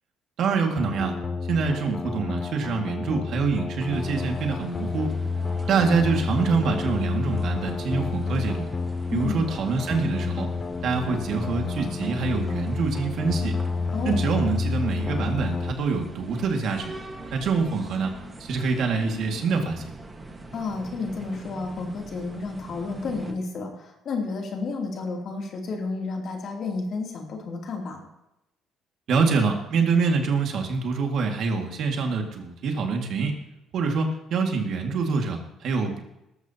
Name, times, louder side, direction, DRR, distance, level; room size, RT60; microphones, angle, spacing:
voice 1, 0.4-1.1 1.5-5.1 5.7-8.7 9.1-10.5 10.8-13.6 14.0-16.9 17.3-18.1 18.4-19.8 29.1-33.4 33.7-36.0, right 4 dB, 55° right, 2 dB, 2.1 m, -25 dB
sound 1, 0.8-15.7, left 4 dB, 25° left, 0.4 m, -30 dB
sound 2, 3.9-23.3, right 2 dB, 15° right, 1.6 m, -43 dB
voice 2, 9.1-9.4 13.9-14.2 20.5-28.0, left 4 dB, 50° left, 0 dB, 3.0 m, -31 dB
19.0 x 14.0 x 2.9 m, 0.89 s
cardioid pair, 155°, 0 cm